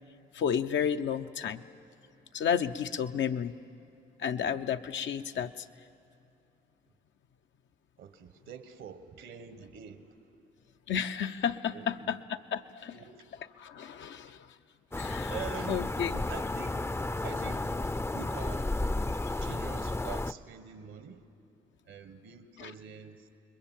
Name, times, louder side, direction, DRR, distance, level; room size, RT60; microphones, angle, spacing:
voice 1, 0.3-1.6 2.3-3.5 4.2-5.7 10.9-13.0 13.3-14.5 15.0-15.4 15.7-16.2 22.6-22.7, left 8 dB, 70° left, 8 dB, 0.7 m, -32 dB
voice 2, 8.0-10.1 11.7-12.1 12.9-13.2 15.3-15.8 16.3-16.7 17.2-17.7 18.1-18.7 19.4-21.2 21.9-23.2, right 7 dB, 75° right, 10 dB, 1.3 m, -45 dB
sound 1, 14.9-20.3, left 2 dB, 15° left, 0.5 m, -32 dB
27.5 x 21.5 x 7.4 m, 2.6 s
supercardioid pair, 45°, 20 cm